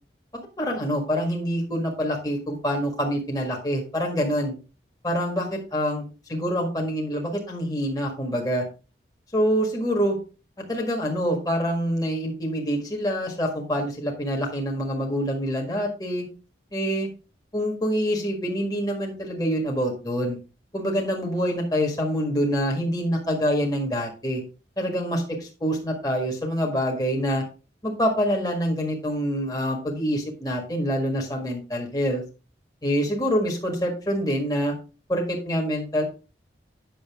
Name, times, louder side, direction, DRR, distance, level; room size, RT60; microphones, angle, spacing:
voice 1, 0.6-4.5 5.0-8.6 9.3-10.2 10.7-16.2 16.7-17.1 17.5-20.4 20.7-24.4 24.8-27.4 27.8-32.2 32.8-34.7 35.1-36.0, equal, 20° left, 0 dB, 1.6 m, -26 dB
8.9 x 6.7 x 3.6 m, 0.33 s
head